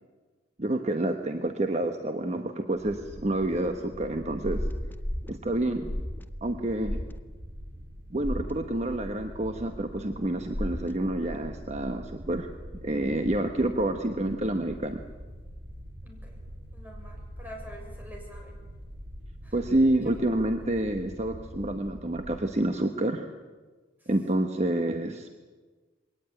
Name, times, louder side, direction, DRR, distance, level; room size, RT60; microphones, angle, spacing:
voice 1, 0.6-4.7 5.3-5.9 6.4-7.0 8.1-12.5 12.8-15.0 19.5-23.3 24.1-25.3, right 1 dB, 40° right, 6 dB, 1.1 m, -28 dB
sound 1, 2.7-22.4, equal, 80° right, 3.2 m, -44 dB
sound 2, 4.4-5.3 5.9-6.2 6.8-7.1 8.2-8.5 10.5-10.9, equal, 10° left, 0.6 m, -32 dB
voice 2, 16.0-16.4 16.7-18.6 19.4-19.6 20.0-20.1 24.0-24.1, equal, 10° right, 0 dB, 6.5 m, -47 dB
21.5 x 18.0 x 9.1 m, 1.4 s
head